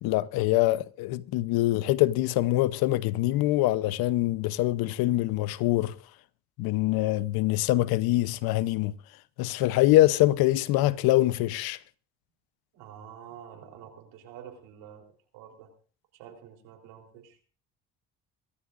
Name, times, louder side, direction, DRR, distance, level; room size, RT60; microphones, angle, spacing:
voice 1, 0.0-5.9 6.6-9.0 9.4-11.8, left 16 dB, 80° left, 0.9 m, -24 dB
voice 2, 12.7-15.1 15.3-15.7 16.1-17.4, right 9 dB, 85° right, 3.8 m, -47 dB
25.0 x 13.0 x 2.6 m
supercardioid pair, 80°, 36 cm